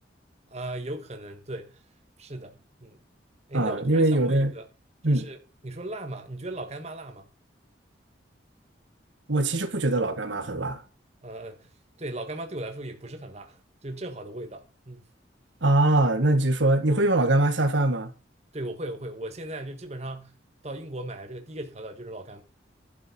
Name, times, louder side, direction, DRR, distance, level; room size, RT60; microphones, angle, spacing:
voice 1, 0.5-1.8 2.2-3.0 3.5-4.6 5.1-7.3 11.2-11.7 12.0-15.0 18.5-20.3 20.6-22.4, right 1 dB, 35° right, 1.6 m, -37 dB
voice 2, 3.5-4.5 5.0-5.2 9.3-10.8 15.6-18.1, right 2 dB, 80° right, 1.7 m, -22 dB
11.5 x 7.4 x 5.4 m
head